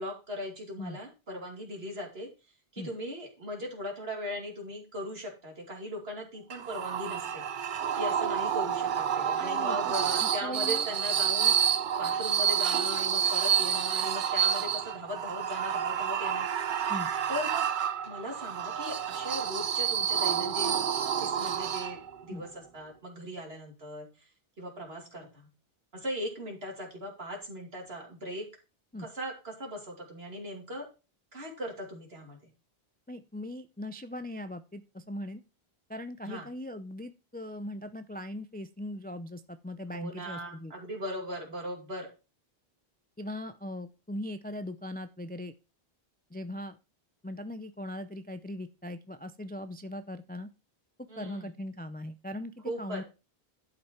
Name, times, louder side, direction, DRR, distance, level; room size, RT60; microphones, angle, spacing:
voice 1, 0.0-2.3 2.7-7.5 8.0-11.5 12.0-16.5 17.3-17.7 18.0-20.9 21.2-24.1 24.6-25.5 25.9-28.4 29.0-30.9 31.3-32.5 36.2-36.5 39.9-42.1 51.1-51.5 52.6-53.0, equal, 75° right, 1 dB, 2.8 m, -39 dB
sound 1, 6.5-22.2, right 8 dB, 60° right, 0.8 m, -29 dB
voice 2, 9.4-10.9 16.9-17.1 22.3-22.5 28.9-29.1 33.1-35.4 35.9-40.7 43.2-45.5 46.3-46.8 47.2-50.5 51.2-53.0, left 1 dB, 10° left, 10 dB, 0.4 m, -40 dB
11.5 x 5.5 x 4.4 m, 0.29 s
omnidirectional pair, 1.0 m